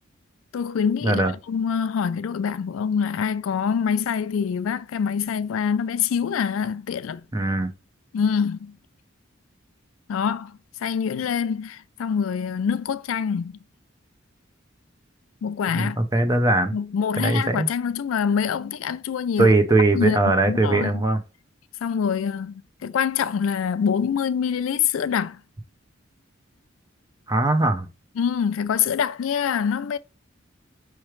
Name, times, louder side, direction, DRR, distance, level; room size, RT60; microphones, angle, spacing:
voice 1, 0.5-7.2 8.1-8.8 10.1-13.6 15.4-16.0 16.7-19.5 19.9-20.2 20.5-21.0 21.8-25.4 28.2-30.0, left 7 dB, 85° left, 0.4 m, -25 dB
voice 2, 7.3-7.7 15.7-16.7 17.2-17.7 19.4-21.2 27.3-27.9, right 2 dB, 20° right, 0.6 m, -20 dB
4.7 x 3.1 x 3.1 m
head